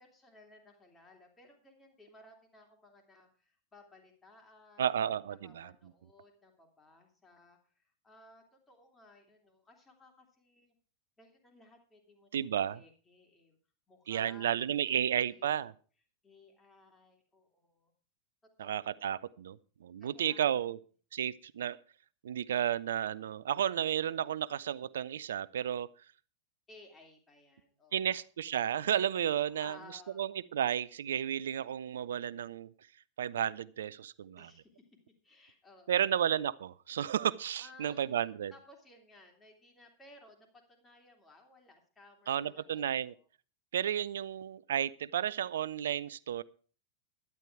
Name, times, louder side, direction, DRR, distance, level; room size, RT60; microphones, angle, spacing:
voice 1, 0.0-4.9 5.4-10.7 11.2-13.6 13.9-14.9 15.2-15.6 16.2-17.9 18.4-19.2 20.0-20.7 26.7-28.2 29.4-30.2 34.4-34.9 35.2-36.0 37.6-43.3, left 2 dB, 15° left, 3 dB, 3.1 m, -59 dB
voice 2, 4.8-5.7 12.3-12.8 14.1-15.7 18.6-20.8 21.1-21.8 22.2-25.9 27.9-29.8 30.2-32.7 33.2-34.5 35.9-38.5 42.3-43.1 43.7-46.4, right 9 dB, 60° right, 18 dB, 0.4 m, -32 dB
12.0 x 10.5 x 4.7 m, 0.40 s
figure-of-eight pair, 90°, 0 cm